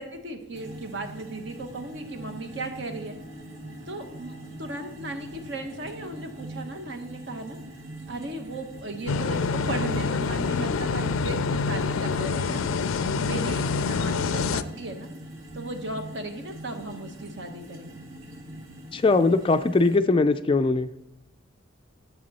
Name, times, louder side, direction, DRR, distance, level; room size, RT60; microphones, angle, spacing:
voice 1, 0.0-3.2 3.9-7.6 8.1-15.1 15.5-18.0, right 2 dB, 60° right, 5 dB, 1.3 m, -36 dB
sound 1, 0.5-20.0, right 1 dB, 75° right, 1.5 m, -43 dB
Bowed string instrument, 1.9-6.8, equal, 45° right, 2.6 m, -52 dB
sound 2, 9.1-14.6, left 5 dB, 90° left, 0.4 m, -26 dB
voice 2, 18.9-21.0, left 3 dB, 25° left, 10 dB, 0.3 m, -21 dB
10.5 x 7.5 x 4.2 m, 0.86 s
head